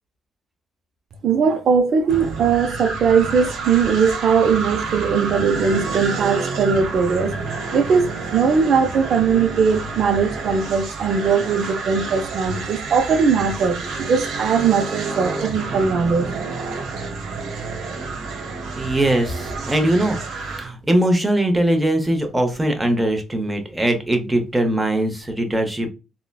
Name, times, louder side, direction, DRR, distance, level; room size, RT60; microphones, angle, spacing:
voice 1, 1.2-7.4 7.7-16.3, right 6 dB, 60° right, 0.5 m, -19 dB
sound 1, 2.1-20.7, right 4 dB, 85° right, 0.9 m, -29 dB
voice 2, 18.7-25.9, right 1 dB, 10° right, 0.8 m, -21 dB
3.7 x 2.1 x 2.3 m
cardioid pair, 90°, 0 cm